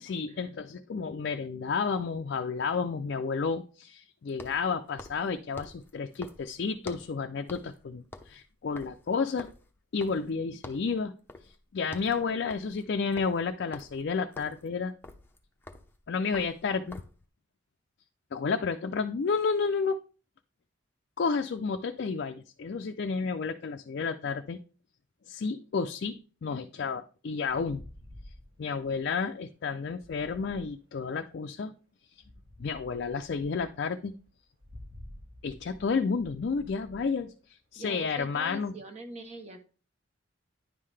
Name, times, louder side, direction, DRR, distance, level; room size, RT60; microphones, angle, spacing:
voice 1, 0.0-9.5 9.9-11.1 11.4-14.9 16.1-17.0 18.3-20.0 21.2-24.6 25.3-27.8 28.6-31.7 32.1-32.2 32.6-34.1 35.4-38.7, left 5 dB, 55° left, 5 dB, 0.4 m, -31 dB
sound 1, 1.0-1.1 4.3-7.2 7.5-7.8 8.1-10.4 10.6-10.9 11.3-11.6 11.8-17.2, left 2 dB, 10° left, 0.6 m, -48 dB
sound 2, 27.5-31.5 32.2-38.5, left 1 dB, 75° right, 3.3 m, -51 dB
voice 2, 37.8-39.6, right 1 dB, 35° right, 5 dB, 0.9 m, -43 dB
9.9 x 5.6 x 3.3 m, 0.38 s
head